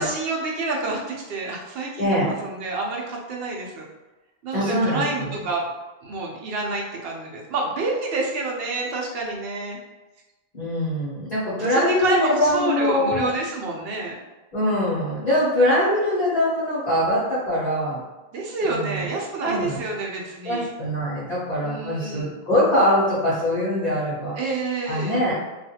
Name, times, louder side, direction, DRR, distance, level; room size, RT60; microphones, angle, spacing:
voice 1, 0.0-3.8 4.4-5.7 6.0-9.8 11.7-14.2 18.3-20.7 21.6-22.3 24.3-25.2, right 3 dB, 75° right, -1 dB, 0.8 m, -28 dB
voice 2, 2.0-2.3 4.5-5.4 10.5-13.3 14.5-18.0 18.6-19.1 19.4-19.8 20.4-24.3 24.9-25.3, left 1 dB, 45° left, -10 dB, 1.0 m, -23 dB
2.4 x 2.4 x 2.7 m, 1.1 s
omnidirectional pair, 1.0 m